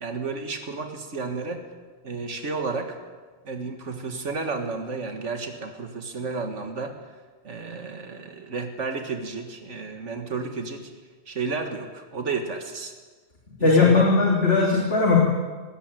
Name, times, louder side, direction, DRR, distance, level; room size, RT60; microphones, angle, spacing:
voice 1, 0.0-1.6 2.0-3.0 3.5-7.0 7.4-10.9 11.3-12.9 13.6-14.1, right 4 dB, 80° right, 5 dB, 2.0 m, -32 dB
voice 2, 13.6-15.2, left 3 dB, 60° left, -3 dB, 3.4 m, -18 dB
19.5 x 17.5 x 9.1 m, 1.4 s
omnidirectional pair, 1.2 m